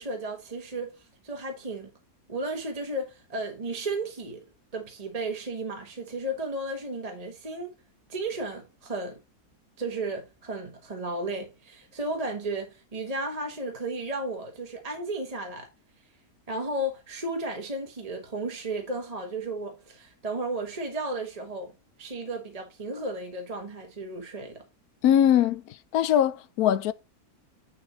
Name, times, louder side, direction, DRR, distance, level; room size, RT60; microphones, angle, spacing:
voice 1, 0.0-1.9 2.3-4.4 4.7-7.7 8.1-9.2 9.8-15.7 16.5-21.7 22.0-24.6, right 2 dB, 25° right, 1.3 m, -34 dB
voice 2, 25.0-26.9, left 10 dB, 80° left, 1.1 m, -22 dB
9.7 x 4.3 x 3.9 m
omnidirectional pair, 1.6 m